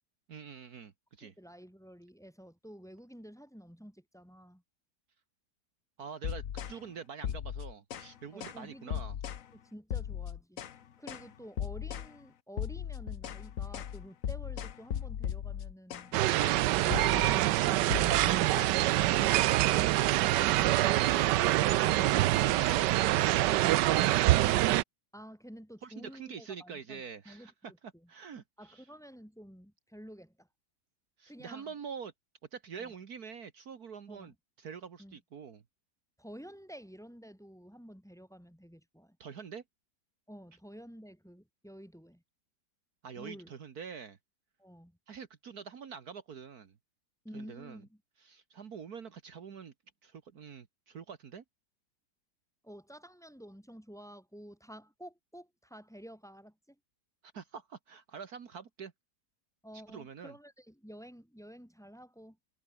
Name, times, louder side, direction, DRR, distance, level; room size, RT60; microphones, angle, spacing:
voice 1, 0.3-1.3 6.0-9.2 19.2-21.5 25.8-28.9 31.2-32.1 32.5-35.6 39.2-39.6 43.0-44.2 45.1-46.8 47.3-47.8 48.2-49.7 50.0-51.4 57.3-58.9 59.7-60.3, right 6 dB, 65° right, 1.9 m, -45 dB
voice 2, 1.2-4.6 8.3-9.0 9.5-10.6 11.0-17.9 25.1-27.5 27.9-28.1 28.6-30.5 31.3-31.7 32.8-32.9 34.1-34.3 35.0-35.2 36.2-39.2 40.3-42.2 43.2-43.5 44.6-45.0 47.2-48.0 52.6-56.8 59.6-62.4, equal, ahead, 4.2 m, -51 dB
sound 1, 6.2-6.8 7.2-8.1 8.4-8.6 8.9-9.4 9.9-10.8 11.1-11.3 11.6-12.1 12.6-16.1 16.4-16.6 16.9-17.4 17.9-18.7, left 9 dB, 55° left, 1.3 m, -37 dB
sound 2, 16.1-24.8, right 16 dB, 90° right, 1.2 m, -25 dB
omnidirectional pair, 1.8 m